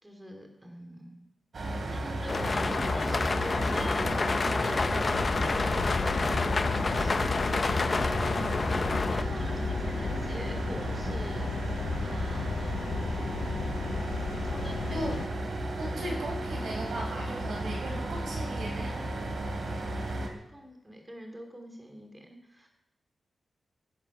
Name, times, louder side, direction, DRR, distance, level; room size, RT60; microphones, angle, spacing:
voice 1, 0.0-1.2 1.9-4.1 4.5-5.0 6.8-11.6 12.0-12.9 14.4-15.2 20.5-22.7, equal, 10° right, 3 dB, 2.7 m, -46 dB
sound 1, 1.5-20.3, right 1 dB, 50° right, 3.0 m, -34 dB
sound 2, 2.3-9.2, left 3 dB, 35° left, 0.7 m, -28 dB
sound 3, 5.1-15.3, left 7 dB, 75° left, 0.6 m, -36 dB
voice 2, 15.8-19.0, right 1 dB, 75° right, 0 dB, 6.1 m, -37 dB
16.0 x 12.0 x 6.0 m, 0.86 s
wide cardioid pair, 135°, 0 cm